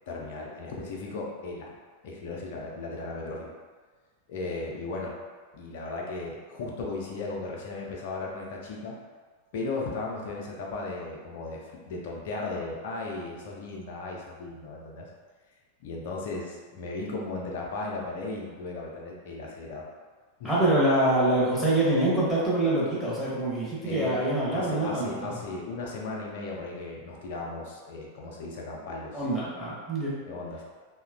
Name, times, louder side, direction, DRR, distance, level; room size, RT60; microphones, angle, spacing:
voice 1, 0.1-1.7 2.0-3.5 4.3-5.1 5.5-9.0 9.5-15.1 15.8-19.9 20.4-20.5 23.9-29.2 30.3-30.6, left 3 dB, 50° left, -2 dB, 0.5 m, -36 dB
voice 2, 20.4-25.4 29.1-30.2, right 1 dB, 5° left, -8 dB, 0.8 m, -25 dB
2.8 x 2.1 x 2.4 m, 1.5 s
figure-of-eight pair, 90°, 0 cm